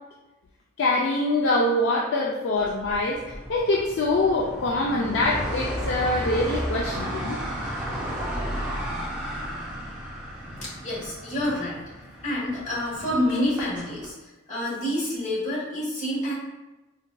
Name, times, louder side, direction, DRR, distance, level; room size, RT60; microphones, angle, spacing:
voice 1, 0.8-3.2 3.5-7.4, left 2 dB, 60° left, -3 dB, 0.3 m, -24 dB
sound 1, 2.6-14.1, equal, 5° right, 0.5 m, -33 dB
voice 2, 10.6-11.8 12.2-16.3, left 1 dB, 35° left, -8 dB, 1.3 m, -28 dB
3.8 x 2.5 x 2.2 m, 1.1 s
head